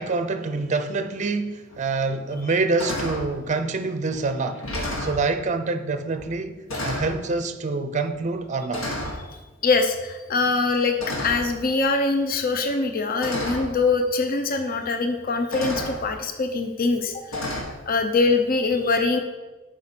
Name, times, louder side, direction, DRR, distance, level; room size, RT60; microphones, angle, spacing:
voice 1, 0.0-4.7 5.0-8.9, right 3 dB, 35° right, 0.5 m, -26 dB
sound 1, 1.7-1.8 2.3-2.5 2.8-3.3 4.1-4.2 4.5-5.2 6.2-6.4 6.7-7.2 8.1-8.4 8.7-9.2 11.0-11.6 12.7-12.8 13.2-13.7 14.9-15.0 15.5-16.0 17.3-17.6, left 1 dB, 85° left, 1.7 m, -30 dB
voice 2, 9.6-17.2 17.9-19.2, left 3 dB, 45° left, 0.6 m, -23 dB
7.6 x 4.9 x 5.9 m
head